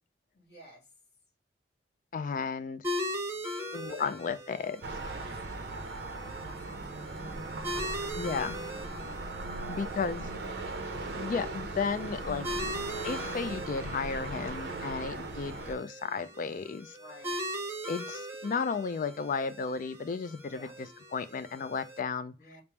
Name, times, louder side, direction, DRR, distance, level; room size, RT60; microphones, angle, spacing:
voice 1, 0.3-0.9 3.3-4.0 5.0-10.7 16.9-17.4 20.5-20.8 22.4-22.6, left 1 dB, 65° left, 1.5 m, -57 dB
voice 2, 2.1-2.8 3.7-4.8 8.1-8.6 9.7-10.3 11.0-12.5 13.0-16.9 17.8-22.3, left 5 dB, 50° left, 0.3 m, -34 dB
sound 1, 2.8-22.0, equal, 15° right, 0.7 m, -40 dB
sound 2, 4.8-15.8, right 2 dB, 65° right, 0.6 m, -38 dB
3.4 x 2.0 x 4.3 m
head